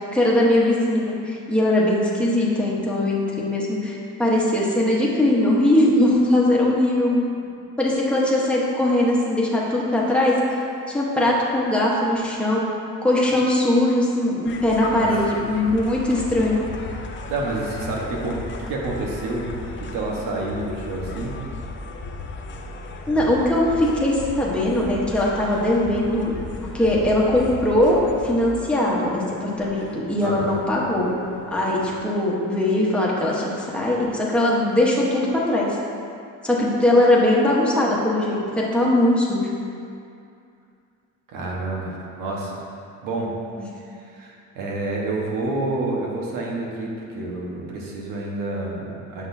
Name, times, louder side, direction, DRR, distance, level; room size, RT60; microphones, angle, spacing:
voice 1, 0.1-7.2 7.8-10.6 10.9-12.6 13.0-16.6 23.1-26.3 26.6-31.2 31.5-35.8 36.4-39.5 43.6-43.7, left 1 dB, 5° left, -5 dB, 1.1 m, -20 dB
sound 1, 14.4-32.0, left 3 dB, 35° left, 0.5 m, -36 dB
voice 2, 17.2-19.5 19.9-21.4 30.2-30.6 41.3-42.6 43.0-43.4 44.0-49.3, right 2 dB, 90° right, -2 dB, 1.3 m, -28 dB
7.9 x 6.1 x 2.7 m, 2.4 s
cardioid pair, 130°, 32 cm